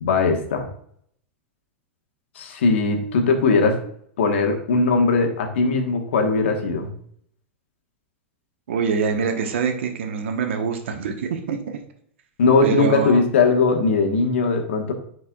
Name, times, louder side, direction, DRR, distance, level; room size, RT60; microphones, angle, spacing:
voice 1, 0.0-0.7 2.3-3.8 4.2-6.9 12.4-14.9, left 4 dB, 75° left, 4 dB, 1.4 m, -19 dB
voice 2, 8.7-11.8 12.6-13.2, right 5 dB, 75° right, 5 dB, 1.2 m, -24 dB
10.0 x 4.7 x 2.4 m, 0.65 s
hypercardioid pair, 110°, 7 cm